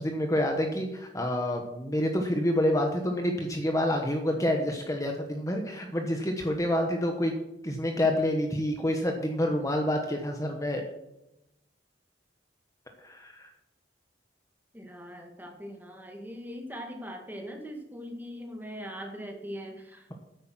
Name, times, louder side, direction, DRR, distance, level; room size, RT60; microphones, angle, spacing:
voice 1, 0.0-7.3 7.6-10.9 13.0-13.5, left 1 dB, 15° left, 3 dB, 1.1 m, -28 dB
voice 2, 14.7-20.1, equal, 10° right, 3 dB, 1.8 m, -41 dB
10.0 x 8.6 x 6.2 m, 0.90 s
head